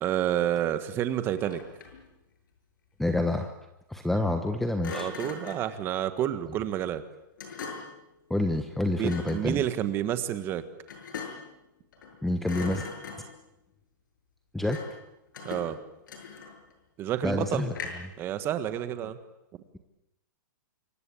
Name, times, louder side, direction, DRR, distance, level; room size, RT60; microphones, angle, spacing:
voice 1, 0.0-1.6 4.9-7.0 9.0-10.6 15.4-15.8 17.0-17.7 18.2-19.2, right 11 dB, 20° right, 11 dB, 1.6 m, -29 dB
Thump thud, 1.3-2.1 4.8-5.7 7.4-8.0 9.0-9.5 10.9-11.6 11.9-12.2 12.4-13.5 14.7-15.0 15.3-16.7 17.7-18.2, left 5 dB, 70° left, 7.7 m, -40 dB
voice 2, 3.0-3.5 3.9-5.1 8.3-9.6 12.2-12.8 14.5-14.8 17.2-17.7, left 1 dB, ahead, 7 dB, 1.1 m, -27 dB
27.5 x 24.0 x 8.6 m, 0.88 s
hypercardioid pair, 165°, 11 cm